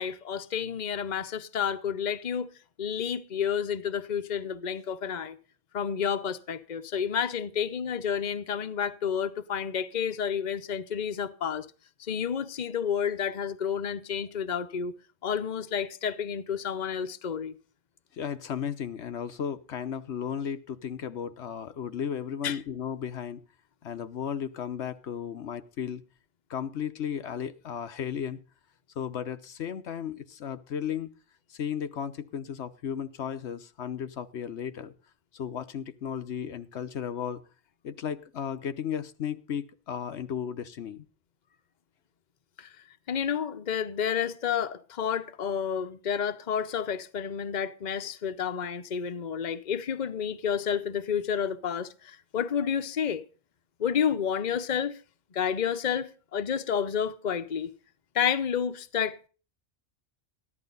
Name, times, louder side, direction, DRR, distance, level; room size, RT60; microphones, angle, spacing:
voice 1, 0.0-2.5 2.8-5.4 5.7-11.7 12.0-14.9 15.2-17.5 22.4-22.6 42.6-42.7 43.1-53.2 53.8-55.0 55.3-57.7 58.1-59.3, left 8 dB, 45° left, 1.0 m, -30 dB
voice 2, 18.1-23.4 23.8-26.0 26.5-28.4 29.0-31.1 31.5-34.9 35.3-37.4 37.8-41.1, left 8 dB, 80° left, 1.1 m, -34 dB
14.5 x 11.0 x 4.0 m
omnidirectional pair, 1.1 m